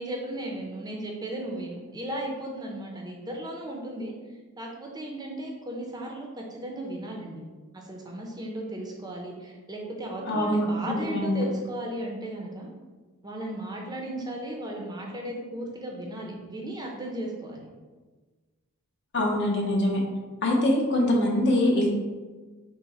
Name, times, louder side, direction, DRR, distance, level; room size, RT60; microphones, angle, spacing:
voice 1, 0.0-4.1 4.6-7.4 7.7-12.7 13.2-17.7, right 1 dB, 20° right, -1 dB, 0.6 m, -35 dB
voice 2, 10.3-11.4 19.1-20.0 20.4-21.9, left 1 dB, 55° left, -1 dB, 0.8 m, -24 dB
5.8 x 2.1 x 4.1 m, 1.3 s
head